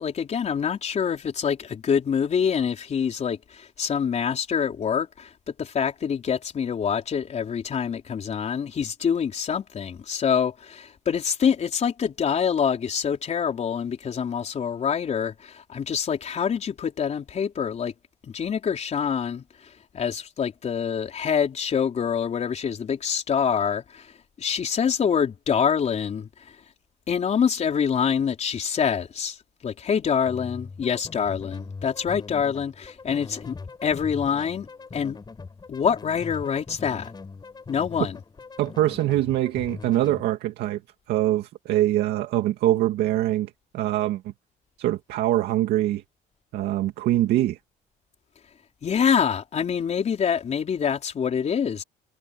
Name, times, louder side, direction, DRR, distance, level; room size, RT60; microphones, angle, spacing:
voice 1, 0.0-17.9 18.3-19.4 19.9-24.1 24.4-26.3 27.1-29.4 29.6-34.7 34.9-35.2 35.7-37.1 37.7-38.2 48.8-51.8, left 7 dB, 40° left, 4.1 m, -26 dB
sound 1, 30.3-40.2, left 4 dB, 25° left, 4.9 m, -41 dB
voice 2, 38.6-40.8 41.1-44.3 44.8-46.0 46.5-47.6, right 14 dB, 80° right, 2.2 m, -24 dB
cardioid pair, 110°, 17 cm